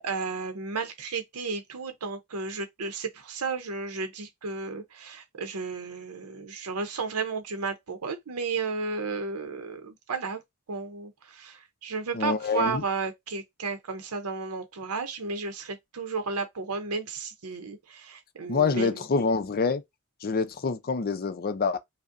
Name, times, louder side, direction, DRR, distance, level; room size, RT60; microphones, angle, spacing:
voice 1, 0.0-10.4 10.7-19.0, right 4 dB, 85° right, 0.7 m, -33 dB
voice 2, 12.1-12.8 18.5-19.8 20.2-21.8, left 4 dB, 45° left, 0.5 m, -26 dB
5.2 x 2.1 x 2.5 m
head